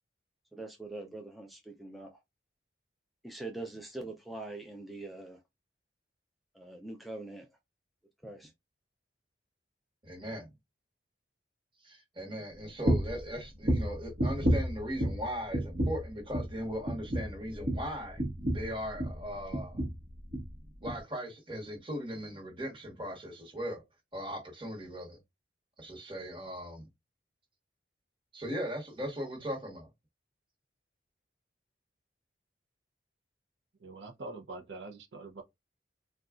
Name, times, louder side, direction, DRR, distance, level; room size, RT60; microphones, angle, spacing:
voice 1, 0.5-2.2 3.2-5.4 6.5-7.5 8.2-8.5, right 2 dB, ahead, 0.4 m, -43 dB
voice 2, 10.0-10.5 11.8-18.2 18.5-19.8 20.8-23.8 24.1-25.2 25.8-26.9 28.3-29.9, equal, 30° right, 1.1 m, -38 dB
sound 1, 12.8-13.2 13.6-15.3 15.5-16.1 16.3-16.6 16.9-19.2 19.5-20.0 20.3-20.5 20.9-21.0, equal, 50° right, 0.9 m, -30 dB
voice 3, 33.8-35.4, right 3 dB, 80° right, 0.6 m, -44 dB
3.9 x 2.3 x 2.3 m
head